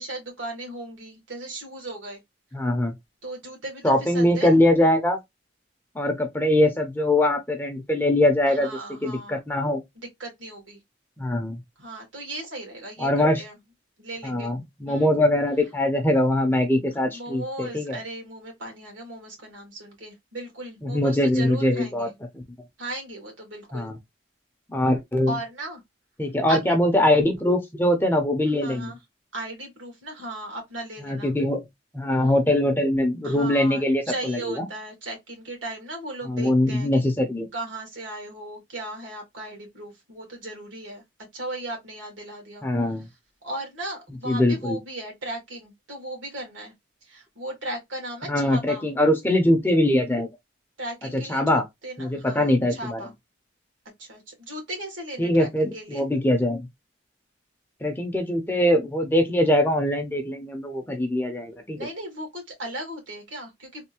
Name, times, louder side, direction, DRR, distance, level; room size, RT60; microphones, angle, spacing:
voice 1, 0.0-2.2 3.2-4.6 8.5-9.4 10.0-10.8 11.8-13.6 14.0-14.5 14.9-15.1 17.1-22.1 22.8-23.9 25.3-25.8 26.5-26.7 28.6-29.0 29.3-31.3 33.2-36.9 37.5-41.0 41.3-42.7 43.4-46.7 47.0-48.9 50.8-53.1 54.0-56.1 61.8-63.8, right 1 dB, 85° right, 1.8 m, -37 dB
voice 2, 2.5-2.9 3.8-5.2 5.9-8.7 9.0-9.8 11.2-11.6 13.0-13.4 14.2-18.0 20.8-22.1 22.3-22.4 23.7-24.0 24.7-25.3 26.2-28.9 31.0-31.7 31.9-34.6 36.3-37.5 42.6-43.1 44.3-44.8 48.3-50.3 51.1-51.6 52.0-53.0 55.2-56.7 57.8-61.8, left 1 dB, 10° left, 0.6 m, -22 dB
3.4 x 2.5 x 2.9 m
head